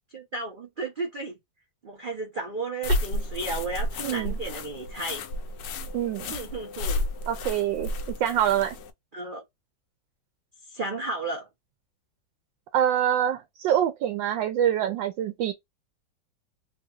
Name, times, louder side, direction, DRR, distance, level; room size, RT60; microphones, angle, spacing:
voice 1, 0.1-1.3 1.8-5.2 6.3-7.0 9.1-9.4 10.7-11.5, right 2 dB, 55° right, 0.5 m, -33 dB
sound 1, 2.8-8.9, left 1 dB, 75° left, 1.2 m, -32 dB
voice 2, 4.0-4.3 5.9-6.3 7.3-7.9 8.2-8.8 12.7-15.5, right 10 dB, 90° right, 1.3 m, -25 dB
3.4 x 2.7 x 2.3 m
omnidirectional pair, 2.0 m